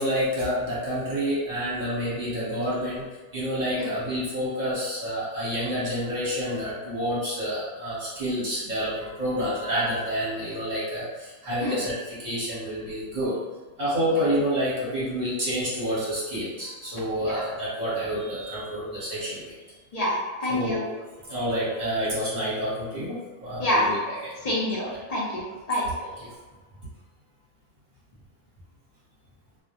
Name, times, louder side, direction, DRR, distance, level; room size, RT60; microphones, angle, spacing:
voice 1, 0.0-3.0 3.3-13.4 13.8-19.6 20.5-20.9 21.2-24.3 24.8-24.9 26.2-26.3, equal, 40° right, -9 dB, 1.0 m, -28 dB
voice 2, 19.9-20.8 23.6-23.9 24.4-25.4 25.7-25.8, left 1 dB, 40° left, -6 dB, 0.6 m, -26 dB
2.3 x 2.0 x 2.8 m, 1.3 s
omnidirectional pair, 1.3 m